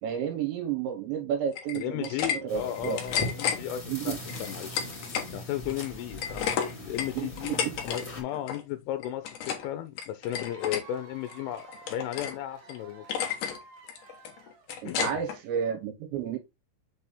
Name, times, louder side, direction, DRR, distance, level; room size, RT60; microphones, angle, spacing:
voice 1, 0.0-2.1 2.4-3.0 3.9-4.2 7.1-7.8 14.8-16.4, right 8 dB, 75° right, 3.5 m, -31 dB
sound 1, 1.5-2.4 2.7-3.6 4.3-5.3 5.7-8.0 8.3-8.6 9.0-9.7 10.0-10.8 11.3-12.4 12.7-12.8 13.1-13.6 13.9-15.4, left 8 dB, 70° left, 2.0 m, -32 dB
voice 2, 1.7-4.8 5.3-13.1 14.8-15.2, left 12 dB, 90° left, 3.0 m, -35 dB
sound 2, 2.5-8.2, left 1 dB, 35° left, 1.0 m, -40 dB
Cheering / Applause / Crowd, 10.2-14.9, right 3 dB, 60° right, 2.5 m, -51 dB
7.2 x 3.4 x 4.2 m
omnidirectional pair, 5.5 m